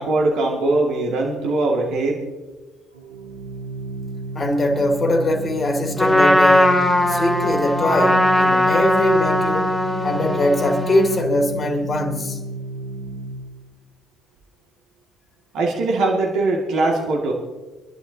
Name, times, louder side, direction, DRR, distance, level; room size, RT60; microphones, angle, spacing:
voice 1, 0.0-2.2 15.5-17.3, right 2 dB, 60° right, 2.3 m, -21 dB
Organ, 2.9-13.7, right 2 dB, 85° right, 1.3 m, -32 dB
voice 2, 4.3-12.4, left 1 dB, 30° left, 2.4 m, -21 dB
Trumpet, 6.0-11.2, left 1 dB, 5° left, 2.7 m, -19 dB
25.5 x 11.5 x 2.9 m
hypercardioid pair, 55°, 0 cm